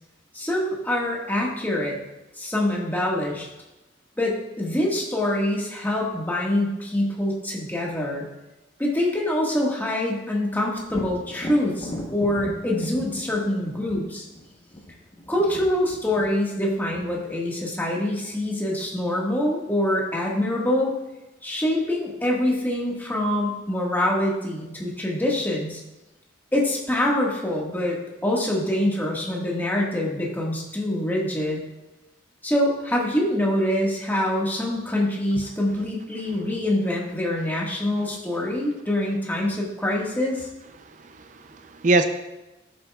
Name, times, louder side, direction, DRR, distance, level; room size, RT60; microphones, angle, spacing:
voice 1, 0.3-2.0 2.4-3.5 4.2-8.3 8.8-14.2 15.3-20.9 21.4-25.8 26.5-28.0 28.2-31.6 32.4-40.5, left 1 dB, 10° left, -3 dB, 1.6 m, -25 dB
Thunder, 10.9-18.5 22.2-22.3 22.8-23.6, equal, 25° left, 1.0 m, -39 dB
voice 2, 40.8-42.1, right 2 dB, 45° right, 8 dB, 0.5 m, -24 dB
13.0 x 7.4 x 2.3 m, 0.99 s
head